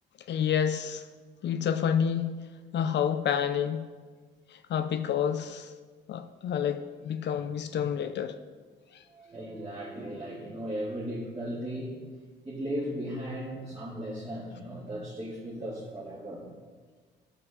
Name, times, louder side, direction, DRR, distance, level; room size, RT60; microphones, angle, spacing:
voice 1, 0.3-1.1 1.4-2.3 2.7-3.9 4.5-5.7 6.1-8.3 8.9-9.0, left 8 dB, 60° left, 9 dB, 0.5 m, -29 dB
voice 2, 9.1-12.0 12.4-16.5, equal, 30° right, -10 dB, 3.0 m, -36 dB
12.0 x 5.6 x 4.1 m, 1.5 s
cardioid pair, 90°, 20 cm